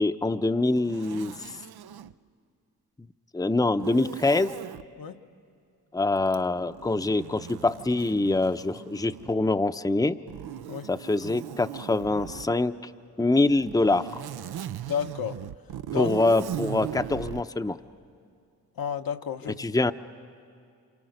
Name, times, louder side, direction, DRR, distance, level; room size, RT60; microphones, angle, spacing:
voice 1, 0.0-1.3 3.3-4.6 5.9-10.2 10.9-12.8 13.2-14.2 16.0-17.8 19.6-19.9, left 2 dB, 10° left, 0.7 m, -24 dB
Zipper (clothing), 0.7-2.1 3.7-4.8 6.3-9.5 10.3-12.5 13.5-17.5, right 10 dB, 75° right, 0.6 m, -39 dB
voice 2, 14.9-15.4 15.9-16.1 18.8-19.7, left 7 dB, 65° left, 1.0 m, -31 dB
27.5 x 27.5 x 6.6 m
supercardioid pair, 40°, 38 cm